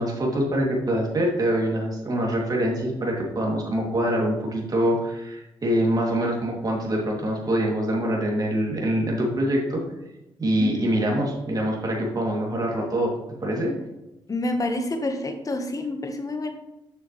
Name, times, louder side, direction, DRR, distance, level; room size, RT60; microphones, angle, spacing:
voice 1, 0.0-9.8 10.4-13.1 13.4-13.7, right 1 dB, 40° right, -2 dB, 2.6 m, -24 dB
voice 2, 14.3-16.5, left 2 dB, 35° left, 6 dB, 1.2 m, -28 dB
7.9 x 6.3 x 3.2 m, 0.96 s
supercardioid pair, 55°, 10 cm